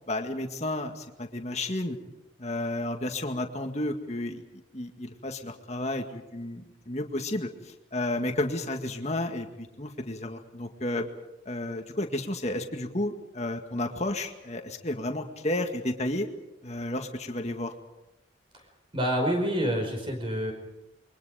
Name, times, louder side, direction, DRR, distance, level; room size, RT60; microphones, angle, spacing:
voice 1, 0.1-2.0 2.4-4.4 4.7-11.1 11.5-16.3 16.6-17.7, left 1 dB, 35° left, 5 dB, 2.0 m, -32 dB
voice 2, 18.9-20.5, equal, 30° right, 4 dB, 5.1 m, -27 dB
28.0 x 23.5 x 5.1 m, 0.92 s
head